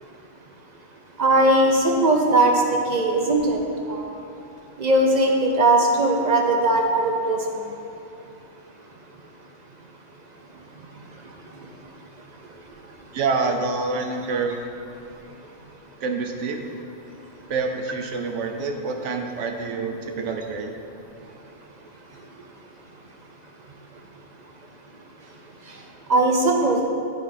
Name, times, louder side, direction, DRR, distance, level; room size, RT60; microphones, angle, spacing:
voice 1, 1.2-2.5 2.9-3.6 3.9-4.1 4.8-7.4 26.1-26.8, right 2 dB, 50° right, 1 dB, 0.6 m, -19 dB
voice 2, 13.1-14.6 16.0-16.6 17.5-20.7, right 4 dB, 80° right, 4 dB, 1.0 m, -27 dB
8.7 x 5.2 x 4.1 m, 2.8 s
omnidirectional pair, 1.2 m